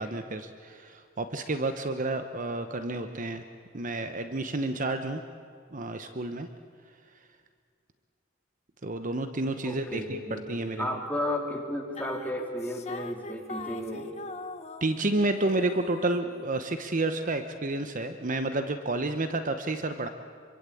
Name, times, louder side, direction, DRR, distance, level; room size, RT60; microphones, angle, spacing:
voice 1, 0.0-3.4 3.7-5.2 5.7-6.5 8.8-10.9 14.8-20.1, right 2 dB, 40° right, 8 dB, 1.0 m, -30 dB
voice 2, 9.6-10.4 10.8-14.1, left 1 dB, 10° left, 1 dB, 3.1 m, -33 dB
sound 1, 11.9-15.2 15.4-16.6, left 3 dB, 35° left, 1.2 m, -42 dB
26.0 x 24.0 x 8.5 m, 2.1 s
head